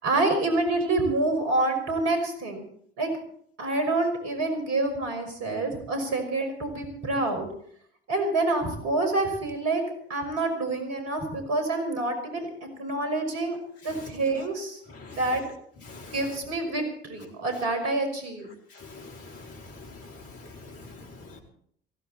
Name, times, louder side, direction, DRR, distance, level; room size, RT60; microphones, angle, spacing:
voice 1, 0.0-2.6 3.0-3.1 3.6-7.5 8.1-9.8 10.1-12.5 12.8-13.6 13.8-14.8 15.2-15.4 16.1-18.5, right 2 dB, 55° right, 6 dB, 5.7 m, -27 dB
voice 2, 18.8-21.4, left 3 dB, 45° left, 2 dB, 4.1 m, -45 dB
19.0 x 16.5 x 4.3 m, 0.63 s
figure-of-eight pair, 60°, 31 cm